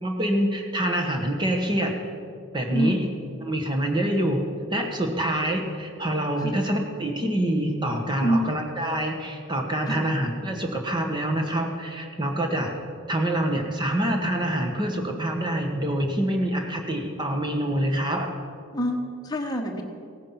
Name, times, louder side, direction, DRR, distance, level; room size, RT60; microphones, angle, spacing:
voice 1, 0.0-1.9 2.5-3.0 3.4-4.4 4.7-12.7 13.1-18.4, right 1 dB, 20° right, 3 dB, 1.4 m, -26 dB
voice 2, 2.7-3.2 6.4-6.6 8.2-8.5 9.9-10.1 18.7-19.8, equal, 15° left, 2 dB, 1.2 m, -26 dB
17.0 x 9.6 x 5.9 m, 2.5 s
head